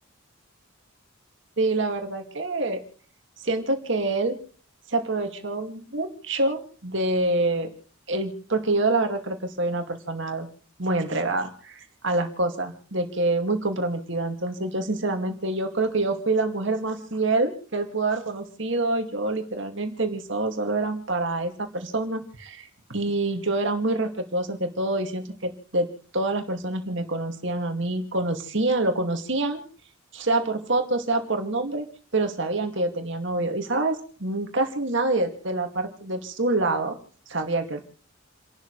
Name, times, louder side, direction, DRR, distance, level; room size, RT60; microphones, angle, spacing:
voice 1, 1.6-2.8 3.4-4.4 4.9-7.7 8.1-10.5 10.8-25.9 26.1-29.6 30.1-31.9 32.1-37.0 37.3-37.8, right 2 dB, 60° right, 4 dB, 2.4 m, -26 dB
30.0 x 12.0 x 3.3 m, 0.43 s
head